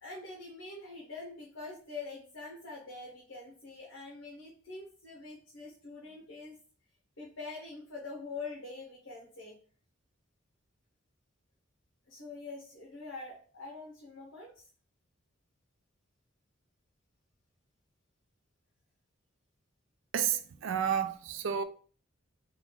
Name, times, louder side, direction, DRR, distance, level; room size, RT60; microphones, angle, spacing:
voice 1, 0.0-6.6 7.2-9.6 12.1-14.7, left 3 dB, 75° left, 0.9 m, -45 dB
voice 2, 20.1-21.6, right 8 dB, 70° right, 0.4 m, -31 dB
3.0 x 2.4 x 3.6 m
head